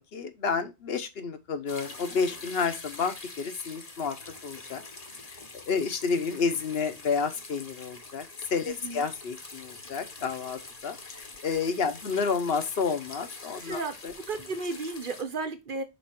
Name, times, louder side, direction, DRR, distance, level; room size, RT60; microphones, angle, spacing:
voice 1, 0.0-4.2 4.4-4.8 5.2-14.1, left 5 dB, 60° left, 1.2 m, -30 dB
sound 1, 1.7-15.2, left 3 dB, 35° left, 1.1 m, -45 dB
voice 2, 8.7-9.0 13.6-13.9 14.3-15.8, right 3 dB, 50° right, 1.2 m, -33 dB
5.4 x 3.9 x 5.8 m
omnidirectional pair, 1.2 m